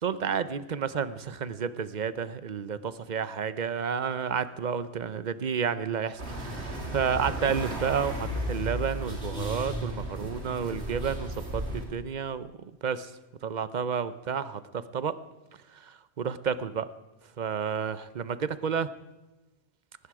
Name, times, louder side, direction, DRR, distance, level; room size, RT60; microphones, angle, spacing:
voice 1, 0.0-12.5 12.8-13.1 13.4-15.2 15.8-16.9 17.4-18.9, right 7 dB, 45° right, 14 dB, 0.8 m, -31 dB
sound 1, 6.2-11.8, right 1 dB, 85° right, 3.1 m, -34 dB
19.5 x 15.5 x 4.8 m, 1.1 s
omnidirectional pair, 1.1 m